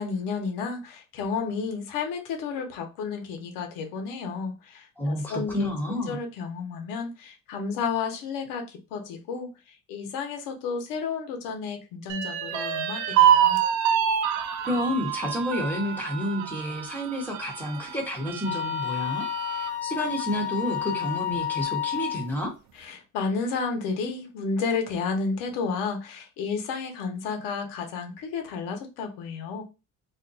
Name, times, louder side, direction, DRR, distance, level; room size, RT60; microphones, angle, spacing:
voice 1, 0.0-9.5 9.9-13.6 22.8-29.6, left 5 dB, 90° left, 1.0 m, -32 dB
voice 2, 5.0-6.2 14.6-22.5, left 1 dB, 5° left, 1.1 m, -30 dB
sound 1, 12.1-19.7 20.2-20.3 20.7-21.4, right 9 dB, 60° right, 0.5 m, -26 dB
Wind instrument woodwind instrument, 18.4-22.3, left 11 dB, 35° left, 0.6 m, -31 dB
2.6 x 2.2 x 3.9 m
cardioid pair, 140°, 32 cm